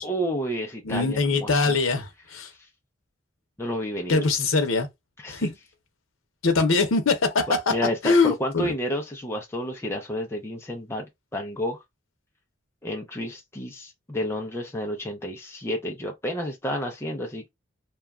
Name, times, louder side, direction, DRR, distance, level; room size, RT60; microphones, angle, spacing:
voice 1, 0.0-1.8 3.6-4.2 5.2-5.5 7.7-11.1 11.3-11.8 12.8-17.5, equal, 10° left, 0.4 m, -30 dB
voice 2, 0.8-2.5 4.1-4.9 5.3-5.5 6.4-7.7 8.0-8.7, left 3 dB, 90° left, 0.7 m, -22 dB
2.9 x 2.3 x 2.3 m
head